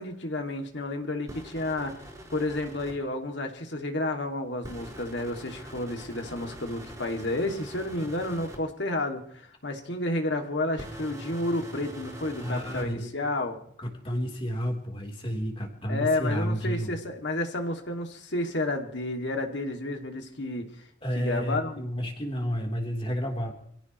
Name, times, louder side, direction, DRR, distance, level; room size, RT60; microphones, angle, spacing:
voice 1, 0.0-2.0 2.3-13.6 15.9-20.9 21.1-21.8, left 2 dB, 60° left, 3 dB, 2.3 m, -31 dB
sound 1, 1.3-2.9 4.6-8.6 10.7-12.9, equal, 15° right, 4.1 m, -43 dB
voice 2, 12.4-13.1 13.8-17.0 21.0-23.5, equal, 25° left, 0 dB, 3.5 m, -31 dB
26.5 x 16.0 x 3.1 m, 0.65 s
head